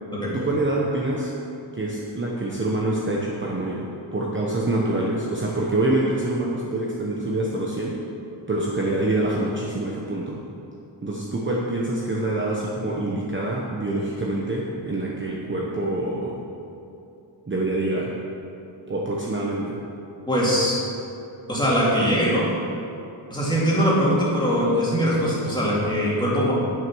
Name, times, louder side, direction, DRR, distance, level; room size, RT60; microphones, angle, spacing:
voice 1, 0.3-1.3 1.7-3.8 4.1-8.0 8.5-10.4 11.0-16.4 17.5-18.1 18.9-19.8, right 2 dB, 25° right, -3 dB, 1.0 m, -26 dB
voice 2, 20.3-20.8 21.5-22.5 23.3-26.5, equal, 10° left, -7 dB, 2.6 m, -21 dB
10.5 x 6.3 x 6.2 m, 2.7 s
wide cardioid pair, 160°, 46 cm